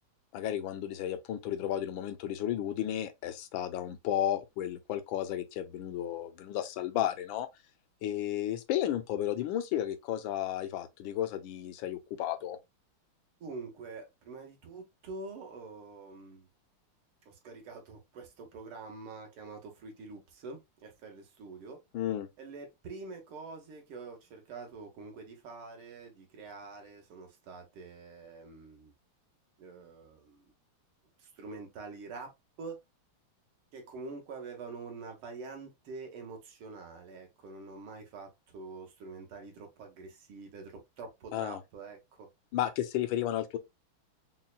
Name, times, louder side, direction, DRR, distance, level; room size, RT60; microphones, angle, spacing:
voice 1, 0.3-7.5 8.0-12.6 21.9-22.3 41.3-41.6 42.5-43.6, left 11 dB, 75° left, 1.3 m, -33 dB
voice 2, 13.4-16.5 17.3-21.8 22.4-28.9 29.6-30.5 31.2-32.3 32.6-32.8 33.7-42.3, right 4 dB, 85° right, 2.0 m, -46 dB
5.5 x 2.2 x 2.4 m
omnidirectional pair, 2.3 m